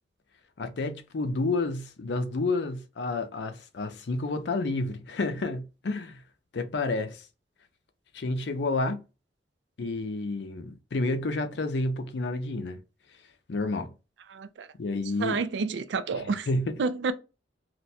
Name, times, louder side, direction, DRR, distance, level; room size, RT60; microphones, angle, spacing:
voice 1, 0.6-6.2 6.5-7.3 8.1-9.0 9.8-12.8 13.5-13.9 14.8-15.4 16.1-16.8, left 2 dB, 70° left, 0.5 m, -30 dB
voice 2, 14.3-14.7 15.2-16.5 16.8-17.1, right 4 dB, 80° right, 0.4 m, -29 dB
2.5 x 2.2 x 4.0 m
head